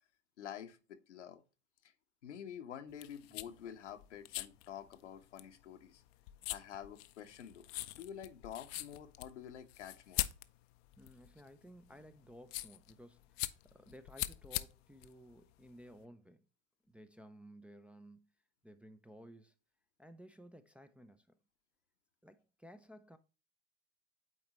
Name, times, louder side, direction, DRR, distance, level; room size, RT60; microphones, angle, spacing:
voice 1, 0.4-1.4 1.8-1.9 2.2-6.0 6.5-10.2, left 9 dB, 85° left, 1.1 m, -49 dB
sound 1, 2.9-16.0, left 16 dB, 60° left, 0.6 m, -44 dB
voice 2, 11.0-16.5 16.9-18.3 18.6-19.5 20.0-21.4 22.2-23.2, equal, 5° right, 0.4 m, -56 dB
8.7 x 3.9 x 2.9 m
hypercardioid pair, 90°, 34 cm